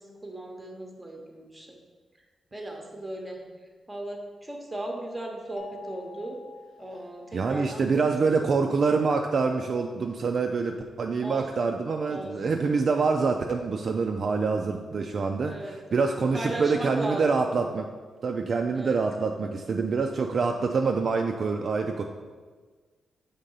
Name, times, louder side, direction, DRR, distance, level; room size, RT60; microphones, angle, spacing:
voice 1, 0.0-1.8 2.5-3.4 3.9-6.4 6.8-8.4 11.2-11.7 12.1-12.6 15.4-17.5 18.7-19.0, right 1 dB, 10° right, 1 dB, 0.9 m, -37 dB
sound 1, 5.6-7.8, left 7 dB, 70° left, 0.7 m, -48 dB
voice 2, 7.3-17.9 18.2-22.0, right 4 dB, 40° right, 3 dB, 0.3 m, -26 dB
6.6 x 3.6 x 5.4 m, 1.4 s
wide cardioid pair, 170°, 0 cm